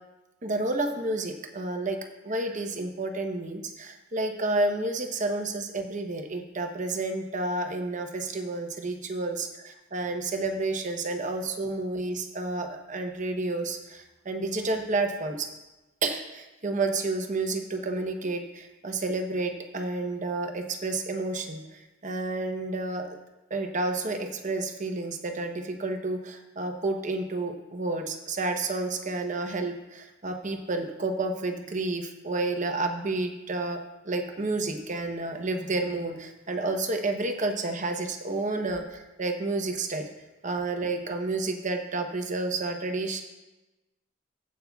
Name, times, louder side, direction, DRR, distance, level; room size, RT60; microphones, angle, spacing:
voice 1, 0.4-2.0 2.2-15.5 16.0-23.2 23.5-40.1 40.4-43.2, right 2 dB, 40° right, 5 dB, 0.9 m, -30 dB
15.5 x 8.5 x 2.4 m, 1.1 s
head